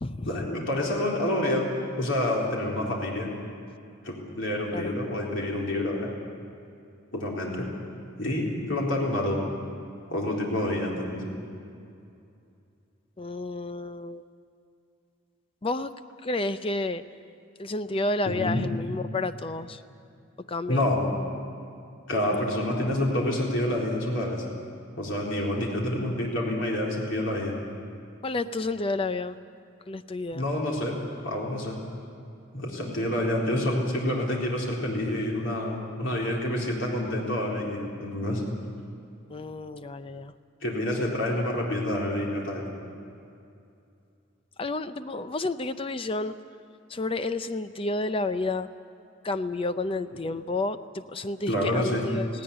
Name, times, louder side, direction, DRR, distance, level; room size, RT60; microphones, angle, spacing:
voice 1, 0.2-3.3 4.0-6.1 7.1-7.7 8.2-9.5 10.1-11.2 18.2-18.6 20.7-21.0 22.1-24.4 25.0-27.5 30.3-31.0 31.2-31.8 32.5-38.4 40.6-42.6 51.5-52.1, left 1 dB, 65° left, -2 dB, 4.0 m, -28 dB
voice 2, 13.2-14.2 15.6-15.9 16.2-17.0 17.6-19.8 20.5-20.8 22.3-22.4 28.2-29.4 29.9-30.5 39.3-40.3 44.6-46.3 46.9-48.7 49.2-52.3, left 2 dB, 25° left, 11 dB, 0.5 m, -30 dB
19.0 x 17.0 x 9.9 m, 2.5 s
head